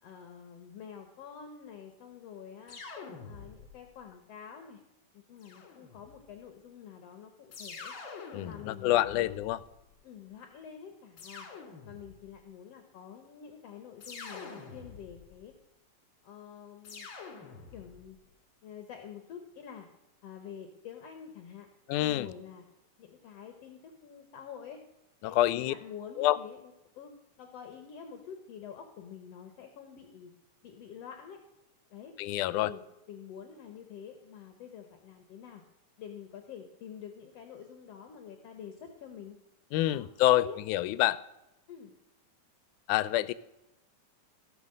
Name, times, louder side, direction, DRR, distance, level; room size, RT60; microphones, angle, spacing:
voice 1, 0.0-2.8 3.2-4.8 5.1-7.9 8.4-9.5 10.0-11.5 11.8-15.5 16.2-17.1 17.7-18.2 18.6-19.9 20.2-21.7 22.0-22.6 23.0-24.8 25.2-27.1 27.4-30.3 30.6-31.4 31.9-32.1 32.5-32.8 33.1-35.6 36.0-39.4 39.9-40.6 41.7-42.0, left 8 dB, 65° left, 5 dB, 1.8 m, -47 dB
sound 1, 2.7-3.9 5.4-6.3 7.5-9.8 11.2-12.3 14.0-15.4 16.8-18.1, left 5 dB, 45° left, 2.3 m, -46 dB
voice 2, 8.3-9.6 21.9-22.3 25.2-25.7 26.2-26.4 32.2-32.7 39.7-41.2 42.9-43.3, left 14 dB, 85° left, 17 dB, 2.0 m, -27 dB
16.5 x 6.1 x 6.5 m, 0.92 s
omnidirectional pair, 3.5 m